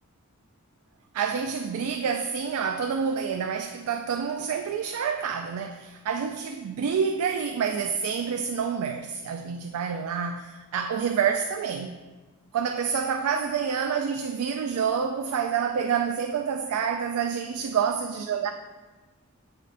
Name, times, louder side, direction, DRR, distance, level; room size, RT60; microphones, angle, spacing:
voice 1, 1.1-12.0 12.5-18.5, right 6 dB, 75° right, 0.3 m, -28 dB
7.4 x 3.9 x 3.3 m
head